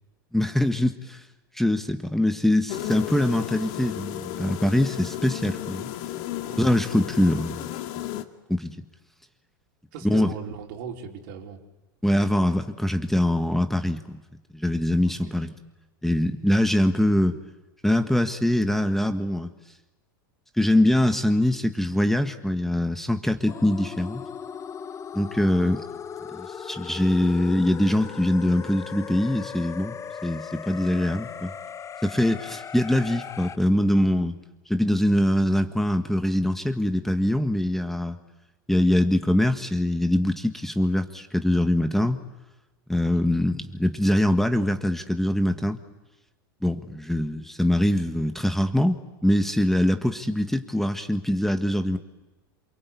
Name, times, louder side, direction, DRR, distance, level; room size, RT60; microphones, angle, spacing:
voice 1, 0.3-1.2 1.5-5.9 6.6-7.7 7.9-8.0 8.5-8.8 10.0-10.3 12.0-14.2 14.5-15.5 16.0-17.4 17.8-19.5 20.6-24.2 25.1-25.8 26.3-29.9 30.2-31.5 32.0-34.3 34.7-38.2 38.7-42.2 42.9-45.8 46.6-52.0, left 1 dB, ahead, 8 dB, 1.5 m, -23 dB
sound 1, 2.7-8.2, left 13 dB, 60° left, 2.2 m, -34 dB
voice 2, 6.3-6.6 9.9-11.6 14.9-15.5 43.1-43.3, right 5 dB, 65° right, 2 dB, 4.5 m, -39 dB
sound 2, 23.5-33.6, left 7 dB, 25° left, 1.1 m, -38 dB
28.0 x 23.5 x 8.5 m, 1.1 s
hypercardioid pair, 100°, 12 cm